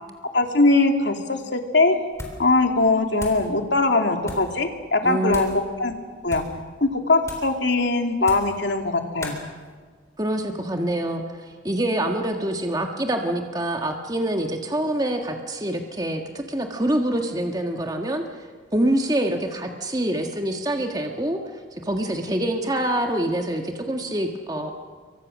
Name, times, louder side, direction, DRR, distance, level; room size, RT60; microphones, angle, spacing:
voice 1, 0.3-2.0 2.4-5.5 5.8-5.9 6.2-6.4 6.8-9.3, left 2 dB, 70° left, 4 dB, 2.5 m, -21 dB
sound 1, 2.1-2.5 2.8-3.5 4.2-4.5 5.3-5.6 6.2-6.6 7.2-7.6 8.2-8.6 9.2-9.4, left 1 dB, 15° left, 3.7 m, -37 dB
voice 2, 5.0-5.6 10.2-11.2 11.6-18.2 18.7-21.4 21.7-24.7, right 1 dB, 20° right, 3 dB, 1.6 m, -25 dB
28.0 x 24.0 x 6.4 m, 1.5 s
head